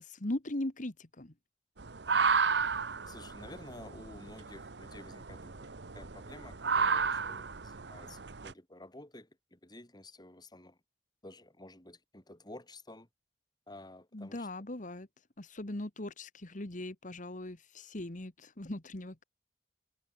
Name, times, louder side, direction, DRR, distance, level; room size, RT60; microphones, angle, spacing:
voice 1, 0.0-1.3 14.1-15.1 15.4-19.2, left 1 dB, 45° left, 1.7 m, -39 dB
sound 1, 1.8-8.5, right 5 dB, 75° right, 1.1 m, -33 dB
voice 2, 3.1-5.6 5.9-10.8 11.2-13.1 13.7-14.5, left 1 dB, 25° left, 3.4 m, -51 dB
head